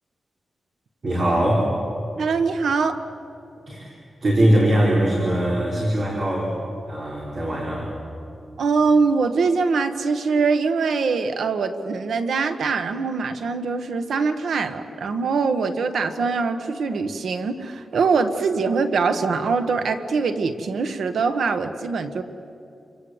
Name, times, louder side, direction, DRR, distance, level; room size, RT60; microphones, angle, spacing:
voice 1, 1.0-1.8 3.7-3.9 4.2-6.6 6.9-7.9, right 1 dB, 40° right, -3 dB, 4.9 m, -21 dB
voice 2, 2.2-3.0 8.6-22.2, right 4 dB, 75° right, 8 dB, 1.5 m, -23 dB
29.5 x 24.5 x 8.2 m, 2.7 s
wide cardioid pair, 175°, 0 cm